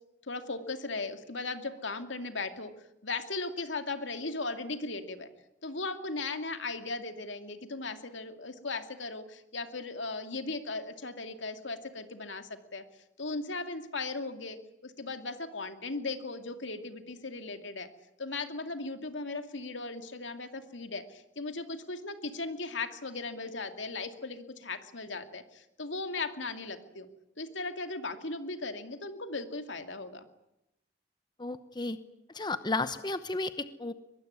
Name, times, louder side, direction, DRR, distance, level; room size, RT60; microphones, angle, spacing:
voice 1, 0.3-2.7 3.0-5.3 5.6-12.8 13.2-14.6 14.8-17.9 18.2-27.1 27.4-30.3, left 3 dB, 75° left, 8 dB, 2.4 m, -37 dB
voice 2, 31.4-32.0 32.3-33.9, left 3 dB, 25° left, 12 dB, 0.9 m, -33 dB
23.5 x 22.0 x 9.7 m, 0.87 s
head